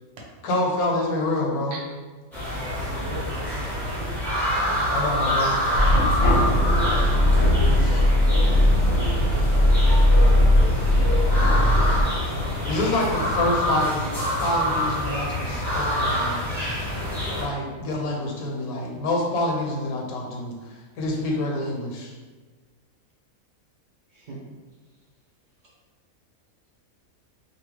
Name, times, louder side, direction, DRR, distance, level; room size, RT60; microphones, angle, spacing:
voice 1, 0.4-1.8 4.9-5.5 7.6-8.0 12.7-14.1 14.4-16.3 17.4-22.1, left 1 dB, 80° left, -1 dB, 1.1 m, -27 dB
sound 1, 2.3-17.4, equal, ahead, 0.6 m, -26 dB
voice 2, 3.0-5.4 6.9-7.9 8.6-9.8, right 2 dB, 60° right, -3 dB, 0.8 m, -41 dB
sound 2, 5.7-12.0, left 1 dB, 55° left, 0.8 m, -18 dB
voice 3, 10.2-11.9 24.1-24.4 25.6-25.7, equal, 90° right, -5 dB, 0.4 m, -43 dB
2.7 x 2.3 x 3.1 m, 1.3 s
omnidirectional pair, 1.5 m